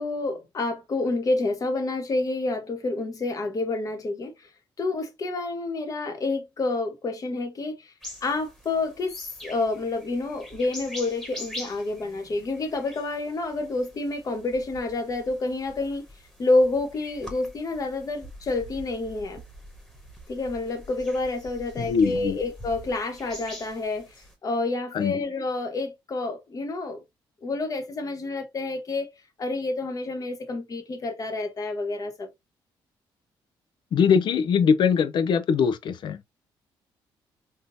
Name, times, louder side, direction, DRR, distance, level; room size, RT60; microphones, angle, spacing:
voice 1, 0.0-4.5 4.8-7.9 8.2-9.1 9.4-16.1 16.4-19.4 20.3-24.1 24.4-27.0 27.4-29.1 29.4-32.3, left 2 dB, 40° left, 1.0 m, -28 dB
sound 1, 8.0-24.3, equal, 5° left, 1.3 m, -44 dB
voice 2, 21.8-22.4 24.9-25.2 33.9-36.2, left 6 dB, 60° left, 0.5 m, -22 dB
3.6 x 2.7 x 2.7 m
cardioid pair, 95°, 9 cm